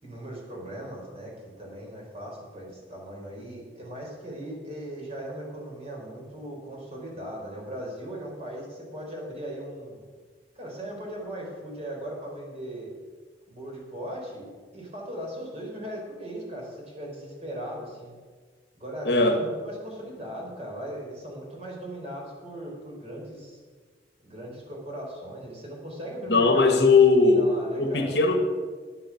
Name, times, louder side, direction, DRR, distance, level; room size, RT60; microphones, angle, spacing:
voice 1, 0.0-10.0 10.6-12.9 13.5-18.1 18.7-23.6 24.2-26.9 27.2-28.2, right 1 dB, 35° right, -2 dB, 3.9 m, -38 dB
voice 2, 19.1-19.4 26.3-27.5 27.8-28.4, left 4 dB, 70° left, 5 dB, 1.6 m, -19 dB
11.5 x 9.5 x 5.8 m, 1.5 s
head